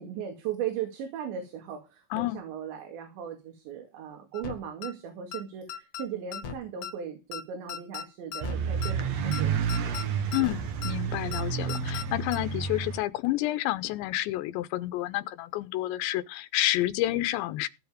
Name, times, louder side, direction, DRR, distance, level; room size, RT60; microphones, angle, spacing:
voice 1, 0.0-10.0 10.3-10.4, right 8 dB, 85° right, 4.6 m, -38 dB
voice 2, 2.1-2.4 10.3-17.7, left 16 dB, 90° left, 3.1 m, -29 dB
sound 1, 4.3-4.5 4.8-4.9 5.3-5.4 5.7-6.0 6.3-6.6 6.8-6.9 7.3-7.4 7.7-8.0 8.3-8.6 8.8-8.9 9.3-9.4 9.7-10.0 10.3-10.5 10.8-10.9 11.3-11.4 11.7-12.0 12.3-12.4, left 8 dB, 70° left, 1.3 m, -36 dB
sound 2, 8.4-13.0, right 7 dB, 65° right, 1.7 m, -30 dB
16.0 x 7.2 x 5.1 m
omnidirectional pair, 5.0 m